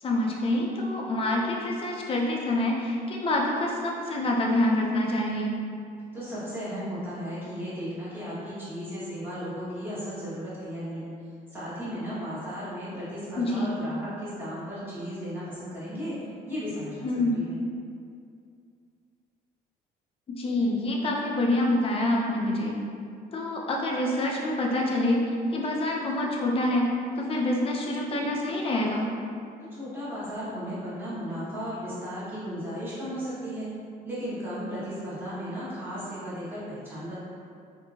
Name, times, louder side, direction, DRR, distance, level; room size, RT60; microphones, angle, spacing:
voice 1, 0.0-5.5 13.4-13.7 17.0-17.4 20.4-22.7 23.3-25.2 25.5-26.9 27.2-29.1, left 1 dB, 35° left, -1 dB, 0.5 m, -26 dB
voice 2, 6.1-11.0 11.5-16.2 16.5-17.6 29.7-33.7 34.0-37.2, equal, 15° right, -11 dB, 1.2 m, -35 dB
2.7 x 2.6 x 2.7 m, 2.4 s
cardioid pair, 110°, 17 cm